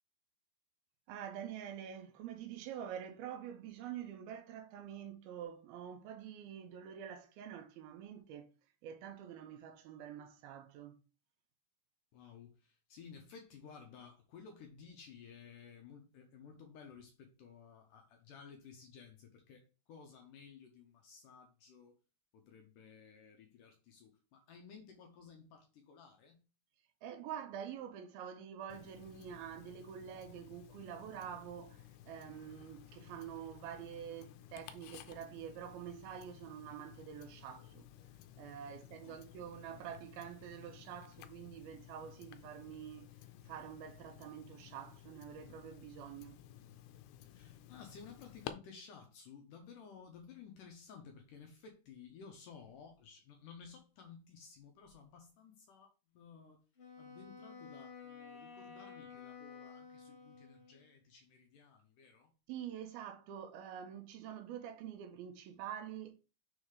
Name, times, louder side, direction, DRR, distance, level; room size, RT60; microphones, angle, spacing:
voice 1, 1.1-8.5 8.8-11.0 27.0-37.9 38.4-43.1 43.4-46.4 62.5-66.2, right 9 dB, 75° right, 2.5 m, -47 dB
voice 2, 12.1-22.0 22.3-26.5 39.0-39.2 47.2-56.6 57.0-62.3, left 6 dB, 70° left, 2.1 m, -55 dB
Tick-tock, 28.7-48.5, left 11 dB, 85° left, 2.7 m, -55 dB
Wind instrument woodwind instrument, 56.8-60.9, left 6 dB, 40° left, 2.6 m, -52 dB
6.5 x 4.1 x 4.8 m
omnidirectional pair, 4.6 m